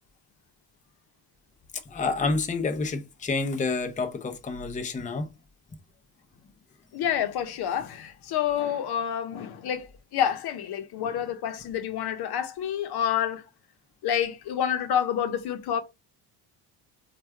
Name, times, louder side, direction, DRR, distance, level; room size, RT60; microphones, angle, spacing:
voice 1, 1.9-5.3, left 3 dB, 20° left, 0.7 m, -29 dB
voice 2, 6.9-9.9 10.1-13.4 14.0-15.8, left 9 dB, 65° left, 0.9 m, -28 dB
4.6 x 2.5 x 4.4 m
cardioid pair, 110°, 41 cm